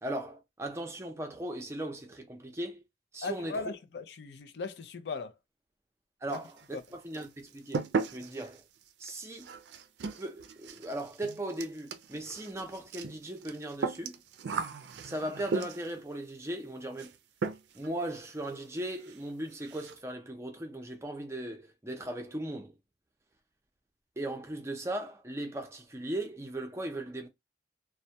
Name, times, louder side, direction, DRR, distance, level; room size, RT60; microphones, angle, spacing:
voice 1, 0.0-2.8 3.1-3.6 6.2-8.6 9.0-9.5 10.2-14.2 15.0-17.1 17.7-22.7 24.2-27.3, right 1 dB, 15° right, 0.5 m, -38 dB
voice 2, 3.2-5.3 6.3-6.4 6.7-6.8, left 4 dB, 75° left, 0.4 m, -38 dB
sound 1, 6.3-6.9 7.1-16.0 17.0-17.2 17.4-17.9 18.2-18.3 18.6-18.7 19.0-19.2 19.5-20.0, right 4 dB, 75° right, 0.4 m, -37 dB
2.2 x 2.1 x 2.7 m
head